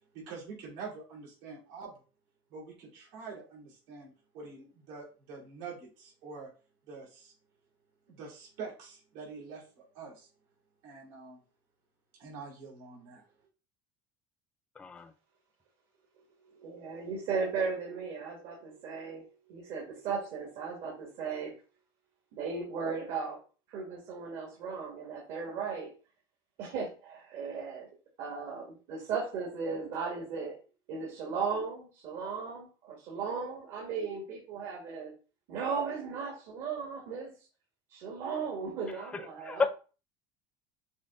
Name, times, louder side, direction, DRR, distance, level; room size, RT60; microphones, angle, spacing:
voice 1, 0.1-1.9 2.5-6.5 6.9-7.3 8.1-10.3 10.8-11.4 12.2-13.3, right 4 dB, 75° right, 2.6 m, -45 dB
voice 2, 14.8-15.1 38.9-39.7, left 4 dB, 10° left, 0.3 m, -32 dB
voice 3, 16.6-21.5 22.3-23.4 23.7-25.9 26.6-27.9 28.2-30.6 30.9-35.1 35.5-37.3 37.9-39.6, right 5 dB, 55° right, 1.5 m, -36 dB
6.1 x 2.2 x 3.7 m
cardioid pair, 170°, 11 cm